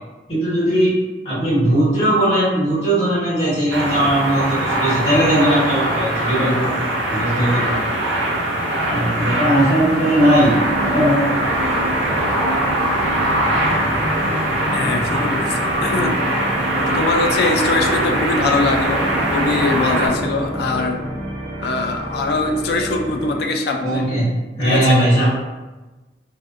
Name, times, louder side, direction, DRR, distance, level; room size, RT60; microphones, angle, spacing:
voice 1, 0.3-0.9 1.2-7.8 8.9-10.5 10.8-12.1 23.8-24.2 24.6-25.3, right 1 dB, 35° left, -10 dB, 1.5 m, -18 dB
sound 1, 3.7-20.1, right 1 dB, 85° right, 0.5 m, -21 dB
sound 2, 10.2-23.5, equal, 30° right, 0.7 m, -28 dB
voice 2, 14.7-16.1 16.8-21.0 21.6-24.0 24.6-25.0, left 3 dB, 60° left, 3 dB, 0.3 m, -22 dB
2.4 x 2.4 x 2.4 m, 1.2 s
head